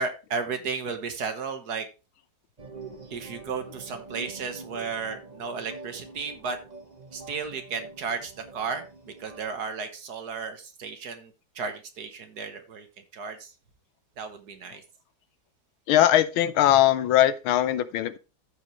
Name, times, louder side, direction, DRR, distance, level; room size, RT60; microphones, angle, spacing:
voice 1, 0.0-1.9 3.1-6.6 7.1-12.9 13.1-13.5 14.2-14.8, right 5 dB, 55° right, 1.6 m, -34 dB
sound 1, 2.6-9.6, right 3 dB, 25° right, 1.0 m, -44 dB
voice 2, 15.9-18.2, left 12 dB, 90° left, 1.6 m, -20 dB
14.0 x 5.1 x 3.1 m
omnidirectional pair, 2.2 m